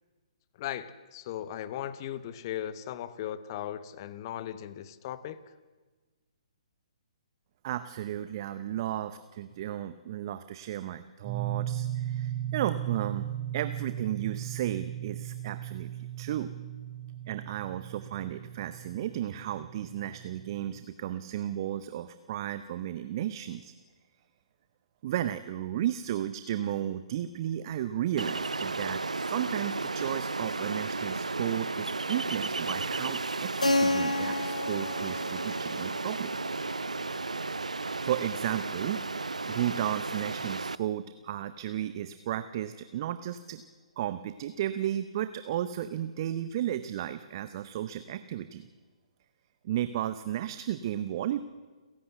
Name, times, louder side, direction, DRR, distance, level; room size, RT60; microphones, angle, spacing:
voice 1, 0.6-5.4, left 11 dB, 35° left, 1.0 m, -37 dB
voice 2, 7.6-13.3 13.5-16.5 17.3-23.7 25.0-36.3 38.0-43.6 44.0-48.7 49.6-51.4, right 11 dB, 40° right, 0.7 m, -34 dB
sound 1, 11.2-20.8, right 12 dB, 15° right, 5.0 m, -37 dB
Ocean, 28.2-40.7, right 3 dB, 80° right, 0.6 m, -34 dB
Keyboard (musical), 33.6-38.2, left 2 dB, 85° left, 1.0 m, -32 dB
29.0 x 11.0 x 8.0 m
figure-of-eight pair, 130°, 4 cm